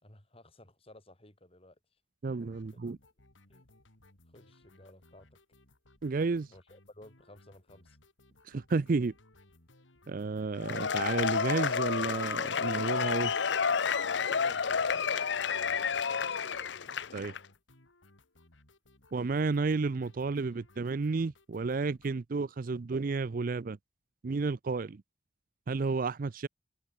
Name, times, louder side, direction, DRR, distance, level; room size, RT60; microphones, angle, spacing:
voice 1, 0.0-1.8 2.7-2.8 3.5-3.7 4.3-5.4 6.5-8.0 14.1-16.7, left 1 dB, 30° left, 4.2 m, -55 dB
voice 2, 2.2-3.0 6.0-6.5 8.4-9.1 10.1-13.3 17.1-17.3 19.1-23.8 24.2-25.0 25.7-26.5, right 4 dB, 45° right, 0.5 m, -31 dB
sound 1, 2.4-22.1, left 2 dB, 85° left, 3.8 m, -62 dB
Cheering / Applause / Crowd, 10.6-17.4, left 6 dB, 65° left, 0.7 m, -30 dB
head